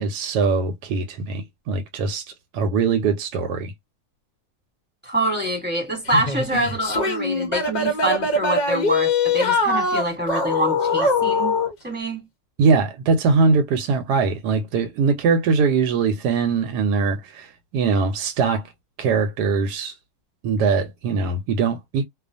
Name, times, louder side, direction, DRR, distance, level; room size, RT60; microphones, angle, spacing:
voice 1, 0.0-3.7 12.6-18.7 19.0-19.9 20.4-22.0, right 4 dB, 85° right, 1.2 m, -21 dB
voice 2, 5.0-11.5 11.8-12.3, right 1 dB, 5° right, 1.0 m, -25 dB
sound 1, 6.1-11.7, left 3 dB, 55° left, 0.5 m, -22 dB
2.4 x 2.3 x 2.5 m
omnidirectional pair, 1.7 m